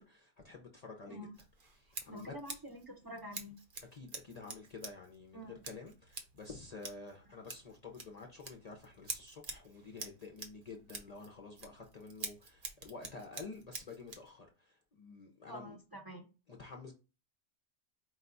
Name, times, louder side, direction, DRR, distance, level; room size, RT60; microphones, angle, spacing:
voice 1, 0.0-1.2 1.7-2.3 3.9-15.7 16.5-16.9, left 4 dB, 45° left, 0.6 m, -50 dB
Scissors, 1.3-14.3, right 4 dB, 50° right, 0.9 m, -48 dB
voice 2, 2.1-3.6 5.3-5.6 15.5-16.3, equal, 20° right, 0.7 m, -47 dB
4.7 x 2.2 x 3.9 m
omnidirectional pair, 1.2 m